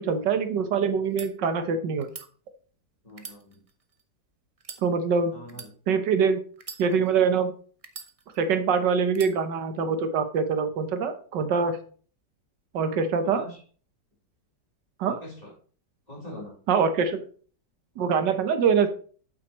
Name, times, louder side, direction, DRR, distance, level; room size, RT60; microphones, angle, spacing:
voice 1, 0.0-2.1 4.8-5.4 5.9-6.4 6.8-7.5 8.4-11.8 12.7-13.4 15.0-15.2 16.7-17.2 18.0-18.9, right 6 dB, 90° right, 8 dB, 1.7 m, -24 dB
sound 1, 1.0-1.3 2.0-2.3 3.1-4.0 4.6-4.8 5.5-5.7 6.6-7.2 7.8-8.5 9.1-9.4, right 5 dB, 35° right, 0.5 m, -42 dB
voice 2, 3.0-3.6 5.3-5.7 13.2-13.6 15.0-15.5 16.1-16.5, equal, 20° left, -4 dB, 3.9 m, -43 dB
8.8 x 8.2 x 3.1 m, 0.42 s
omnidirectional pair, 1.8 m